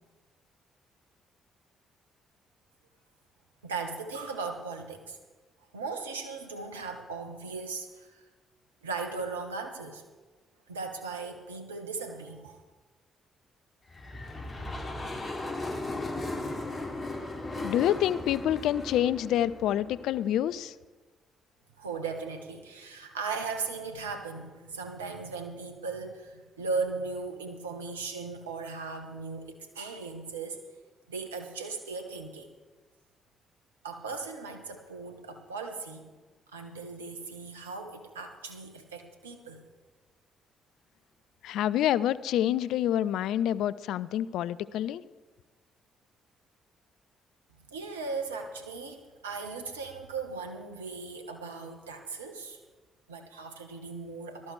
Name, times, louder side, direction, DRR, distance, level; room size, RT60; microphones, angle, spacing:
voice 1, 3.6-5.2 5.7-8.2 8.8-10.0 10.7-12.6 21.8-30.6 31.1-32.5 33.8-36.1 36.5-39.6 47.7-52.6 53.1-54.5, right 4 dB, 90° right, 5 dB, 1.1 m, -37 dB
sound 1, 13.9-20.3, left 2 dB, 35° left, 4.2 m, -37 dB
voice 2, 17.6-20.7 41.4-45.0, left 11 dB, 70° left, 18 dB, 0.4 m, -27 dB
18.5 x 13.0 x 3.2 m, 1.3 s
hypercardioid pair, 45°, 0 cm